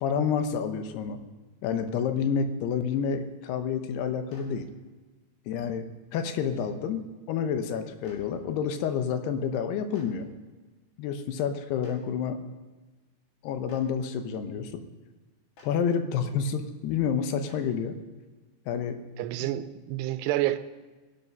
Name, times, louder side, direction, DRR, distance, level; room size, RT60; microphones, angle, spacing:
voice 1, 0.0-1.2 1.6-4.7 5.5-10.3 11.0-12.4 13.4-14.8 15.6-18.0 18.7-19.0 19.4-19.5, left 7 dB, 75° left, 2.9 m, -29 dB
Clapping, 4.3-4.4 6.2-6.3 8.0-8.2 9.9-10.0 11.8-11.9 13.6-13.8 15.5-15.6 17.4-17.6, left 2 dB, 60° left, 4.4 m, -52 dB
voice 2, 19.2-20.6, right 15 dB, 80° right, 2.7 m, -28 dB
20.0 x 11.5 x 5.4 m
omnidirectional pair, 4.9 m